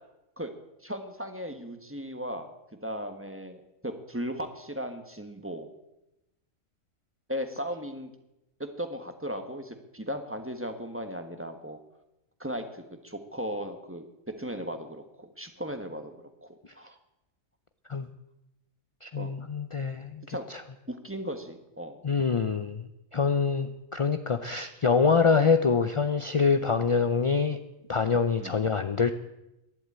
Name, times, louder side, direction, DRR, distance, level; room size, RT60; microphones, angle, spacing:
voice 1, 0.8-2.5 2.8-5.7 7.3-8.1 8.6-11.8 12.4-16.1 16.4-16.9 19.2-19.3 20.3-20.5 20.9-22.0 28.4-28.6, equal, 10° right, 6 dB, 1.3 m, -37 dB
voice 2, 19.0-20.2 20.5-20.6 22.0-27.6 27.9-29.1, left 5 dB, 45° left, 9 dB, 0.4 m, -25 dB
12.5 x 11.0 x 8.7 m, 0.92 s
omnidirectional pair, 1.3 m